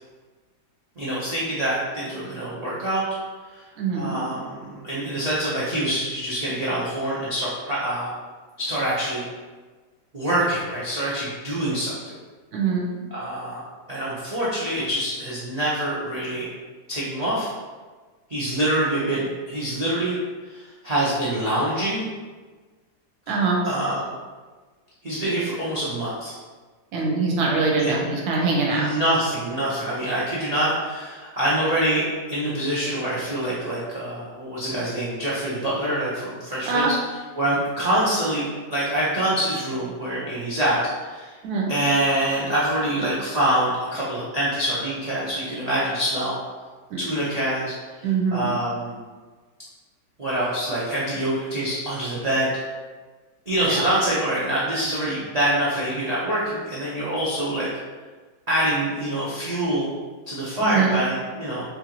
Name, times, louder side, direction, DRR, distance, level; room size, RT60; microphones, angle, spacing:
voice 1, 1.0-3.0 3.5-3.6 3.9-8.1 8.6-9.2 10.1-12.1 13.1-13.6 13.9-16.5 16.9-17.5 18.3-20.2 20.5-22.1 23.6-24.1 25.0-26.3 27.8-27.9 28.7-36.9 37.4-38.5 38.7-41.3 41.7-46.3 47.0-47.7 48.0-49.0 50.2-52.5 53.5-57.7 58.5-59.9 60.3-61.6, right 1 dB, 55° right, -9 dB, 0.4 m, -25 dB
voice 2, 3.8-4.2 12.5-12.9 23.3-23.6 26.9-28.8 36.7-36.9 41.4-41.7 46.9-47.0 48.0-48.5 53.7-53.9 60.6-61.0, right 4 dB, 75° right, -2 dB, 1.1 m, -23 dB
4.2 x 2.5 x 2.9 m, 1.4 s
omnidirectional pair, 1.8 m